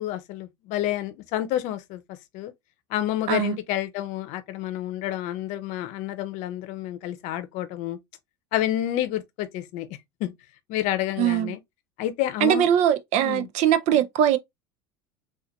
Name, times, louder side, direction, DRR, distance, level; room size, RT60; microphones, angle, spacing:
voice 1, 0.0-2.0 2.3-2.5 2.9-8.0 8.5-9.9 10.2-10.3 10.7-11.6 12.0-12.7 13.2-13.5, left 13 dB, 60° left, 0.7 m, -29 dB
voice 2, 11.2-11.5 12.4-14.4, right 10 dB, 55° right, 0.5 m, -21 dB
4.2 x 2.5 x 2.4 m
hypercardioid pair, 90°, 14 cm